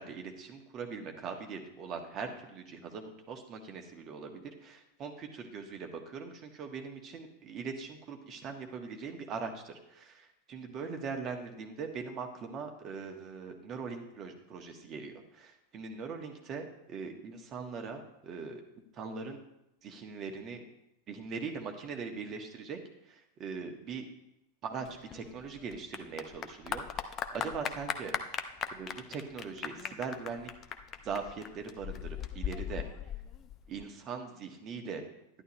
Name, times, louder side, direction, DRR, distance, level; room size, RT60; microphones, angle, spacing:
voice 1, 0.0-18.6 18.9-19.4 19.8-20.6 21.1-22.8 23.1-24.1 24.6-24.9 25.1-28.1 28.7-30.5 31.0-32.8 33.7-35.0, right 5 dB, 30° right, 4 dB, 1.6 m, -41 dB
Clapping / Applause, 24.8-33.8, left 9 dB, 30° left, 0.7 m, -39 dB
11.0 x 11.0 x 3.2 m, 0.84 s
figure-of-eight pair, 90°, 0 cm